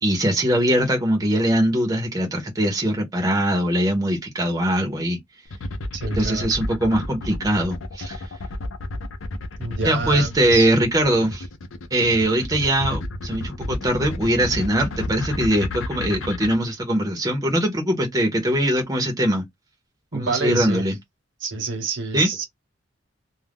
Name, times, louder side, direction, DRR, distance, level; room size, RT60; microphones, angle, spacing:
voice 1, 0.0-5.2 6.2-8.2 9.8-11.5 11.9-19.4 20.1-20.9 22.1-22.3, right 1 dB, 20° right, 0.7 m, -21 dB
sound 1, 5.5-16.6, left 2 dB, 85° left, 0.6 m, -32 dB
voice 2, 5.9-6.5 9.6-10.7 20.1-20.9 21.4-22.4, right 3 dB, 65° right, 1.0 m, -27 dB
2.3 x 2.2 x 3.4 m
head